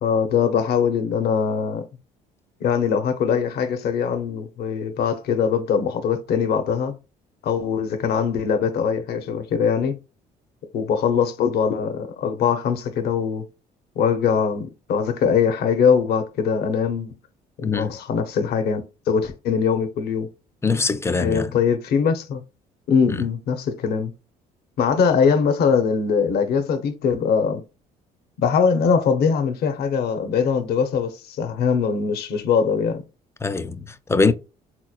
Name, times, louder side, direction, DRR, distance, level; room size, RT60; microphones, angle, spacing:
voice 1, 0.0-1.8 2.6-6.9 7.4-10.0 10.7-13.4 14.0-17.1 17.6-18.8 19.1-20.3 21.2-22.4 22.9-24.1 24.8-27.6 28.4-33.0, left 6 dB, 70° left, 0.8 m, -22 dB
voice 2, 17.6-17.9 20.6-21.6 23.1-23.2 33.4-34.3, left 4 dB, 15° left, 0.5 m, -22 dB
3.8 x 3.0 x 2.4 m
supercardioid pair, 80°, 17 cm